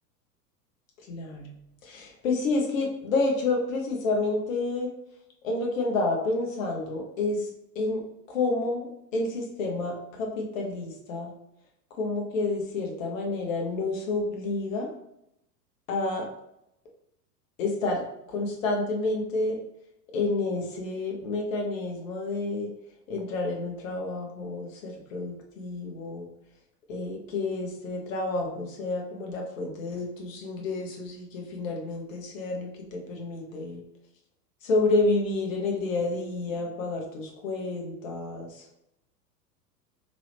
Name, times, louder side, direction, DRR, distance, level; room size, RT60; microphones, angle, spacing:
voice 1, 1.1-1.5 1.8-4.9 5.4-7.5 7.7-11.3 12.0-14.9 15.9-16.3 17.6-19.6 20.1-22.7 23.1-26.3 26.9-33.8 34.6-38.6, left 3 dB, 50° left, 0 dB, 1.1 m, -29 dB
4.0 x 2.9 x 3.4 m, 0.80 s
figure-of-eight pair, 90°, 49 cm